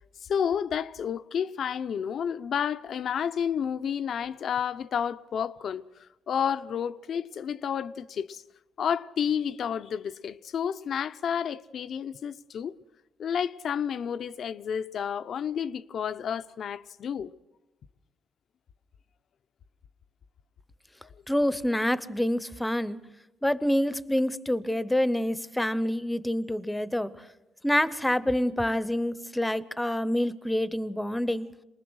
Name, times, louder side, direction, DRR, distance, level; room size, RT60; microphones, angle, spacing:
voice 1, 0.2-5.8 6.3-8.4 8.8-12.8 13.2-17.3, left 8 dB, 60° left, 0.7 m, -30 dB
voice 2, 21.3-23.0 23.4-27.1 27.6-31.5, left 1 dB, 5° left, 0.9 m, -27 dB
27.5 x 20.0 x 6.3 m
cardioid pair, 90°, 0 cm